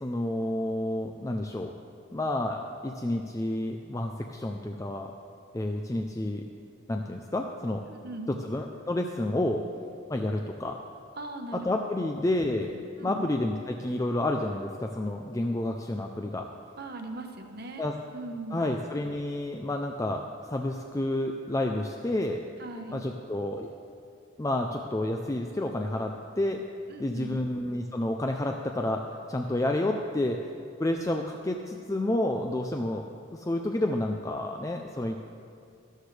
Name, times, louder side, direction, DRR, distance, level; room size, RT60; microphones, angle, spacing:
voice 1, 0.0-1.7 2.1-5.1 5.5-6.4 6.9-7.8 8.3-9.6 10.1-10.8 11.5-12.7 13.0-16.5 17.8-17.9 18.5-22.4 22.9-23.7 24.4-26.6 27.0-29.0 29.3-30.4 30.8-33.0 33.3-35.2, left 1 dB, 15° left, 3 dB, 0.4 m, -30 dB
voice 2, 7.9-8.4 11.2-11.7 12.0-12.1 13.0-13.2 16.8-18.7 22.6-23.0 26.9-27.5, right 2 dB, 50° right, 4 dB, 1.0 m, -39 dB
13.0 x 13.0 x 3.3 m, 2.4 s
head